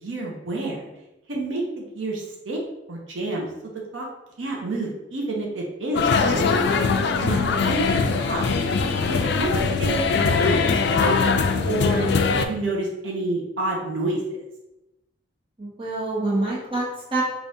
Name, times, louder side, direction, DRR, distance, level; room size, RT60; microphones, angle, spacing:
voice 1, 0.0-0.9 1.3-2.6 2.9-3.5 3.9-4.1 4.4-6.5 7.2-7.9 8.2-8.4 9.1-9.5 9.8-10.6 10.9-11.1 11.7-14.2, right 2 dB, 80° right, -1 dB, 0.7 m, -28 dB
sound 1, 5.9-12.4, left 4 dB, 60° left, 0.3 m, -21 dB
voice 2, 7.2-7.7 15.6-17.2, right 2 dB, 25° right, -6 dB, 1.0 m, -27 dB
5.0 x 2.4 x 2.7 m, 0.94 s
head